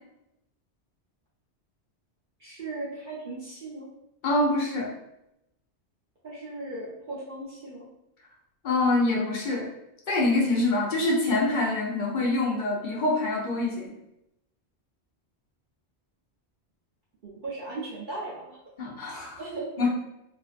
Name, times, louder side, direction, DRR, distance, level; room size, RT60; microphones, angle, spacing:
voice 1, 2.4-3.9 6.2-7.9 17.2-18.6 19.4-19.9, right 2 dB, 55° right, -7 dB, 0.7 m, -37 dB
voice 2, 4.2-4.9 8.6-9.7 10.1-13.9 18.8-19.4 19.8-19.9, left 2 dB, 55° left, -2 dB, 0.7 m, -25 dB
2.5 x 2.3 x 2.4 m, 0.84 s
omnidirectional pair, 1.1 m